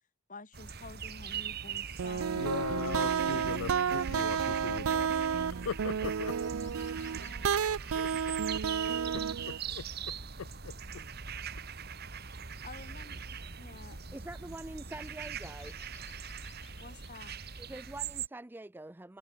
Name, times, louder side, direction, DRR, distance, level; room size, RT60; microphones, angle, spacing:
voice 1, 0.3-2.5 12.6-13.2 13.6-14.0 16.8-17.4, left 3 dB, 40° left, 2.3 m, -49 dB
sound 1, 0.5-18.3, right 6 dB, 45° right, 1.5 m, -41 dB
sound 2, 1.2-17.9, left 10 dB, 55° left, 6.2 m, -64 dB
sound 3, 2.0-9.6, right 7 dB, 80° right, 0.5 m, -31 dB
voice 2, 2.4-5.1 5.7-6.3 7.9-8.1 9.1-9.8 10.4-10.7, left 6 dB, 75° left, 0.5 m, -39 dB
voice 3, 14.1-15.9 17.6-19.2, right 1 dB, 10° right, 0.4 m, -45 dB
head